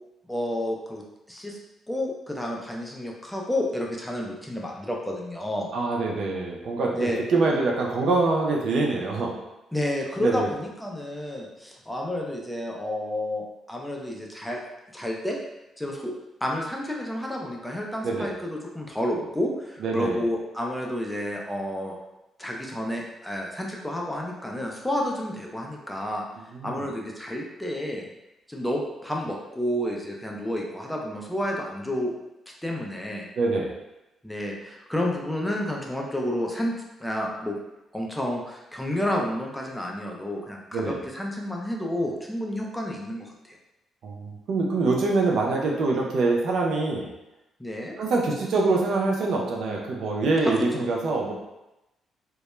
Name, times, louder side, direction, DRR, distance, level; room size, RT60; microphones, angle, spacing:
voice 1, 0.3-1.6 1.9-5.7 6.9-7.2 9.7-14.6 14.9-15.4 15.8-16.1 16.4-22.0 22.4-26.2 26.6-28.1 28.5-32.1 32.6-33.3 34.2-36.7 37.0-37.6 37.9-43.6 47.6-47.9 50.4-50.9, left 1 dB, 5° left, -1 dB, 0.4 m, -30 dB
voice 2, 5.7-9.3 10.2-10.5 18.0-18.3 19.8-20.2 26.6-26.9 33.4-33.7 40.7-41.0 44.0-47.1 48.0-51.3, right 3 dB, 65° right, -1 dB, 0.4 m, -24 dB
2.2 x 2.0 x 3.0 m, 0.94 s
cardioid pair, 105°, 0 cm